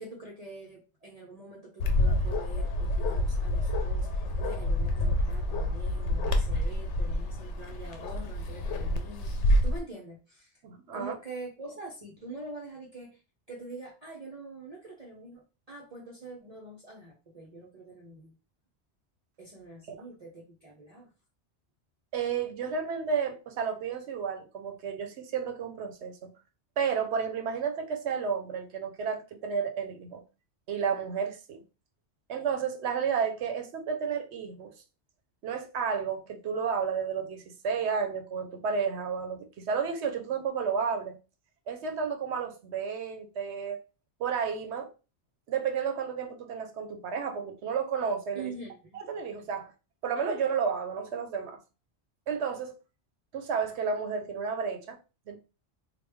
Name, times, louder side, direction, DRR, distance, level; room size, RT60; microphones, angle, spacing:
voice 1, 0.0-9.3 9.6-10.6 10.9-13.2 13.5-18.4 19.4-21.1 48.3-49.0, right 2 dB, 40° right, 0.6 m, -45 dB
Bark, 1.8-9.8, left 1 dB, 85° left, 0.9 m, -28 dB
voice 2, 10.6-11.1 22.1-26.3 26.8-30.2 30.7-31.6 32.3-34.7 35.4-41.2 41.7-43.8 44.2-44.9 45.5-48.5 48.9-49.7 50.0-51.6 52.3-52.7 53.3-55.0 55.3-55.4, right 6 dB, 80° right, 0.9 m, -32 dB
3.1 x 2.3 x 3.3 m
omnidirectional pair, 1.1 m